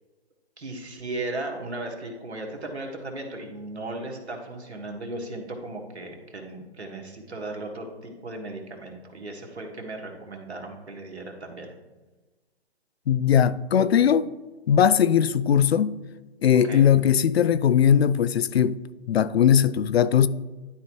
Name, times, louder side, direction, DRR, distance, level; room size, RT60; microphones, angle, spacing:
voice 1, 0.6-11.7 16.6-16.9, right 2 dB, 80° right, 1.7 m, -36 dB
voice 2, 13.1-14.3 14.7-16.0 16.4-18.8 19.1-20.3, left 8 dB, 70° left, 0.5 m, -19 dB
11.5 x 4.6 x 3.0 m
figure-of-eight pair, 135°, 32 cm